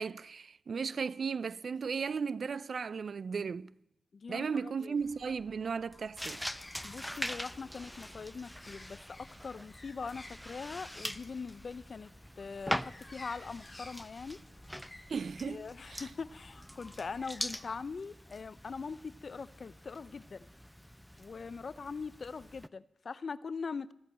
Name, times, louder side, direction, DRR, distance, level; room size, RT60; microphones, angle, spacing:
voice 1, 0.0-3.7 4.3-6.4 15.1-16.1, right 5 dB, 65° right, 0.4 m, -36 dB
voice 2, 4.1-5.0 6.8-9.0 9.4-12.1 12.4-14.4 15.5-20.5 21.2-23.9, left 5 dB, 60° left, 0.5 m, -42 dB
sound 1, 5.0-17.8, left 1 dB, 25° left, 2.6 m, -55 dB
sound 2, 6.2-22.7, equal, 5° left, 0.5 m, -43 dB
14.5 x 8.4 x 7.4 m
cardioid pair, 50°, 0 cm